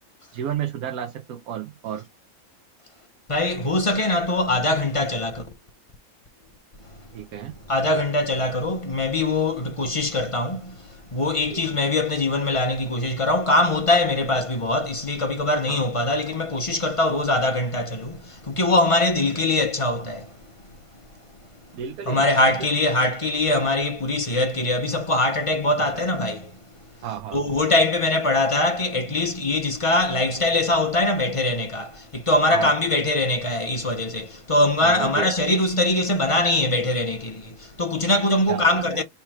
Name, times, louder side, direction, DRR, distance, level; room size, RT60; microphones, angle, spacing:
voice 1, 0.3-2.1 7.1-7.6 11.4-11.7 15.7-15.9 21.7-22.7 25.8-26.1 27.0-27.5 32.5-32.7 34.8-35.4 38.5-39.0, right 9 dB, 80° right, 1.1 m, -32 dB
voice 2, 3.3-5.5 7.7-10.7 11.1-20.3 22.1-26.5 27.3-39.0, left 2 dB, 35° left, 0.5 m, -22 dB
3.5 x 3.0 x 4.7 m
omnidirectional pair, 1.5 m